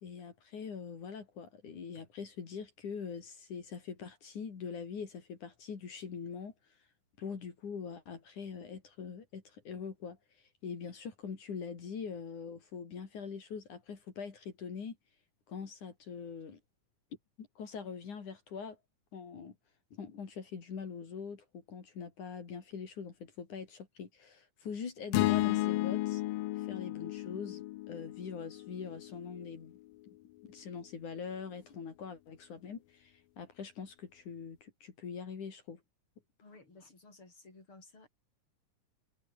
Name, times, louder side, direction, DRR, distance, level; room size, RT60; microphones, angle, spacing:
voice 1, 0.0-6.5 7.2-10.2 10.6-15.0 15.5-16.6 17.4-18.8 19.1-19.5 19.9-26.2 26.5-29.8 30.5-35.8, left 6 dB, 65° left, 4.7 m, -43 dB
sound 1, 25.1-29.4, left 17 dB, 90° left, 2.5 m, -33 dB
voice 2, 36.4-38.1, left 3 dB, 35° left, 7.8 m, -56 dB
omnidirectional pair, 3.9 m